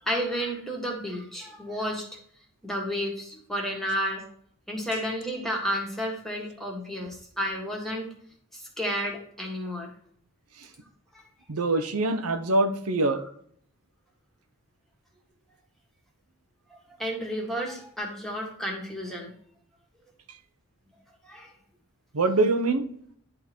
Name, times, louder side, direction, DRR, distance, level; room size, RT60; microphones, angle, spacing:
voice 1, 0.0-2.1 2.6-4.2 4.7-8.1 8.5-9.9 13.1-13.2 17.0-19.3 21.2-21.5, equal, ahead, -1 dB, 1.8 m, -31 dB
voice 2, 11.5-13.2 22.1-22.9, right 2 dB, 90° right, 8 dB, 0.8 m, -24 dB
10.5 x 3.9 x 4.4 m, 0.62 s
head